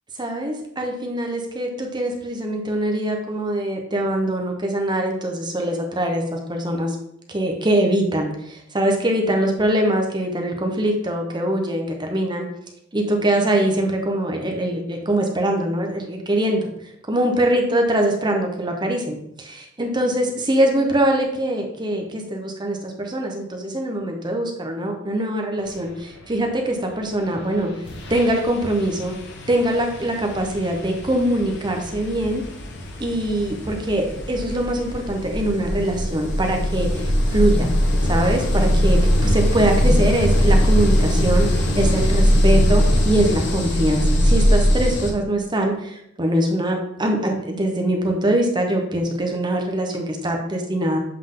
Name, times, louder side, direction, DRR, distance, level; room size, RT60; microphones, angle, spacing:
voice 1, 0.2-7.0 7.3-12.5 12.9-16.7 17.1-27.7 28.1-29.1 29.5-32.4 33.0-37.7 38.0-51.0, right 1 dB, 20° right, 2 dB, 0.8 m, -23 dB
sound 1, 27.3-27.5 27.8-45.1, equal, 60° left, 0.9 m, -21 dB
7.6 x 3.6 x 3.7 m, 0.75 s
head